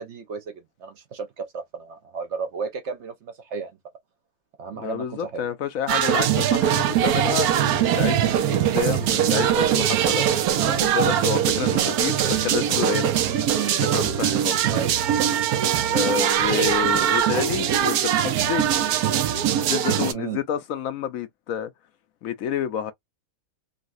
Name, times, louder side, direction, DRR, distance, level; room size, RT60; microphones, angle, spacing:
voice 1, 0.0-3.7 4.6-5.5 13.5-13.8 14.6-15.0 16.9-17.1 20.1-20.4, right 6 dB, 60° right, 0.9 m, -33 dB
voice 2, 4.7-13.1 13.9-14.6 15.9-18.6 19.6-21.7 22.2-22.9, left 9 dB, 70° left, 1.0 m, -29 dB
sound 1, 5.9-20.1, right 10 dB, 85° right, 1.1 m, -22 dB
3.9 x 2.2 x 2.5 m
omnidirectional pair, 1.5 m